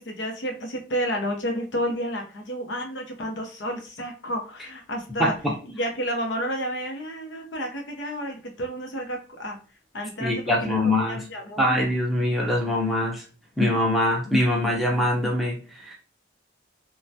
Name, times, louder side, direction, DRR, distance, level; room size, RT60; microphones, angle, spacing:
voice 1, 0.0-5.3 5.6-9.6 9.9-11.8, equal, 75° left, 2 dB, 0.7 m, -31 dB
voice 2, 5.2-5.5 10.2-11.3 11.6-13.2 13.6-15.9, left 1 dB, ahead, -3 dB, 0.6 m, -23 dB
3.1 x 2.2 x 2.6 m, 0.36 s
head